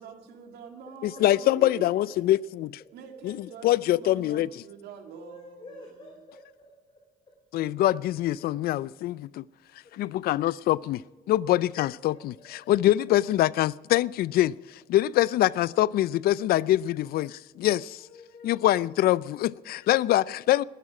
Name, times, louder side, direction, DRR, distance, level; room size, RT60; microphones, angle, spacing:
voice 1, 0.0-2.2 2.9-5.8, right 6 dB, 75° right, 2.4 m, -45 dB
voice 2, 1.0-2.8 3.2-3.4 3.6-4.5 7.5-9.4 9.9-18.1 18.4-20.6, left 14 dB, 65° left, 0.4 m, -24 dB
voice 3, 5.1-6.7 11.4-11.6 12.1-12.2 17.1-17.2 18.0-18.8, left 2 dB, 30° left, 3.4 m, -48 dB
21.0 x 10.0 x 4.9 m
cardioid pair, 110°, 17 cm